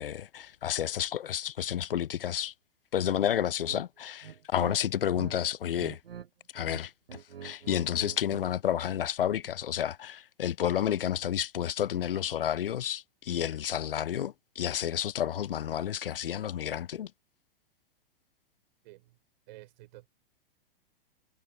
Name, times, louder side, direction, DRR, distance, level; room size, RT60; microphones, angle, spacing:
voice 1, 0.0-2.5 2.9-6.0 6.5-6.9 7.4-17.1, left 10 dB, 70° left, 0.8 m, -30 dB
sound 1, 3.6-3.8 4.2-5.3 5.6-6.3 6.5-8.5, right 8 dB, 75° right, 1.0 m, -45 dB
voice 2, 18.8-19.2 19.5-20.1, right 18 dB, 50° right, 5.6 m, -51 dB
figure-of-eight pair, 105°, 29 cm